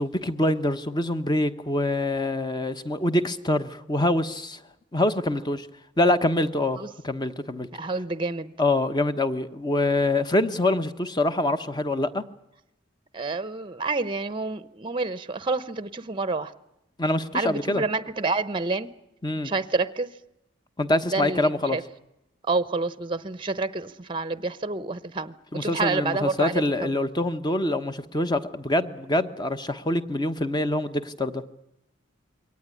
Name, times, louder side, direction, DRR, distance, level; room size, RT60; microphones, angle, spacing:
voice 1, 0.0-4.6 4.9-5.7 6.0-7.7 8.6-12.2 17.0-17.8 19.2-19.5 20.8-21.8 25.5-31.4, left 1 dB, 20° left, 10 dB, 1.2 m, -25 dB
voice 2, 7.7-8.5 13.1-16.5 17.3-18.9 19.4-20.1 21.0-21.8 22.4-26.9, right 3 dB, 25° right, 15 dB, 0.8 m, -28 dB
23.0 x 18.5 x 9.9 m, 0.88 s
head